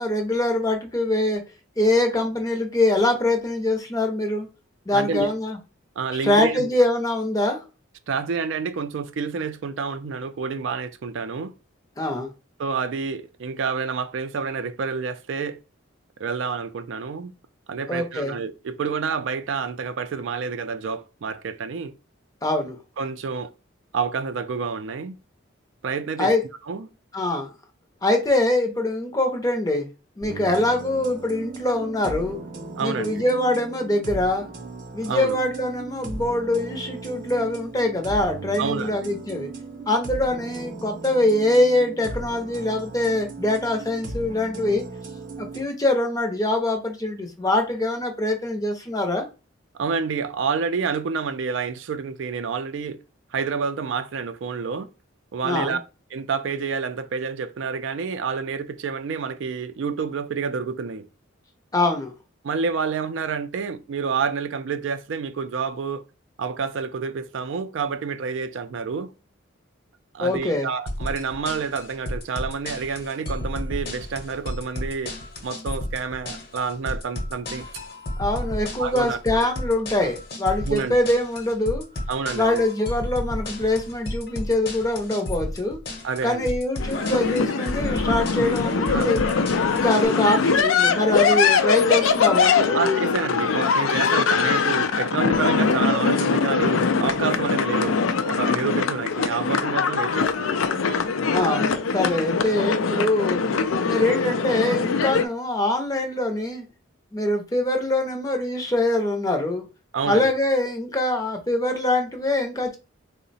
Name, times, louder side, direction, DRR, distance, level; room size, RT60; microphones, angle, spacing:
voice 1, 0.0-1.4 1.8-4.5 4.9-5.6 6.1-7.6 12.0-12.3 17.9-18.4 22.4-22.8 26.2-26.4 27.1-27.5 28.0-29.9 30.2-32.4 32.8-34.5 34.9-39.5 39.9-44.8 45.4-49.3 55.4-55.8 61.7-62.1 70.2-70.7 78.2-81.8 82.3-85.8 86.2-89.2 89.7-92.8 101.3-103.4 103.9-106.6 107.1-109.7 110.0-112.8, left 1 dB, 15° left, 0.6 m, -23 dB
voice 2, 4.9-5.3 6.0-6.7 8.1-11.5 12.6-15.6 16.2-17.3 17.7-21.9 23.0-23.5 23.9-25.1 25.8-26.3 26.7-26.9 32.8-33.2 35.0-35.4 38.6-39.0 49.7-53.0 53.3-54.9 55.3-55.8 56.1-61.1 62.4-66.0 66.4-69.1 70.1-75.1 75.4-77.7 78.8-79.5 80.7-81.0 82.1-82.6 86.0-86.5 88.9-89.1 90.0-90.1 91.3-91.5 92.7-100.6 109.9-110.3, right 5 dB, 70° right, 0.4 m, -28 dB
sound 1, 30.2-45.6, right 3 dB, 40° right, 0.7 m, -37 dB
sound 2, 70.9-90.1, left 1 dB, 50° left, 0.9 m, -32 dB
sound 3, 86.8-105.2, left 5 dB, 85° left, 0.4 m, -22 dB
3.8 x 2.1 x 4.0 m
head